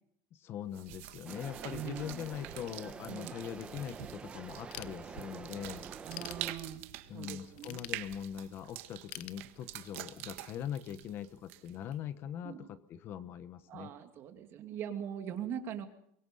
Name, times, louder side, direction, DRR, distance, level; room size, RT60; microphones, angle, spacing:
voice 1, 0.3-5.9 7.1-13.9, left 9 dB, 35° left, 13 dB, 1.1 m, -42 dB
sound 1, 0.7-11.9, right 16 dB, 85° right, 1.6 m, -46 dB
sound 2, 1.2-6.5, right 5 dB, 15° right, 1.1 m, -47 dB
voice 2, 1.7-2.1 3.1-3.3 6.1-6.9 7.1-7.8 12.4-12.7 13.7-15.9, right 9 dB, 35° right, 6 dB, 2.6 m, -41 dB
Ratchet pawl / Tools, 4.7-5.5 5.9-7.0 7.6-8.5 9.1-10.1, left 18 dB, 65° left, 1.0 m, -47 dB
24.0 x 23.0 x 5.5 m, 0.70 s
cardioid pair, 170°, 7 cm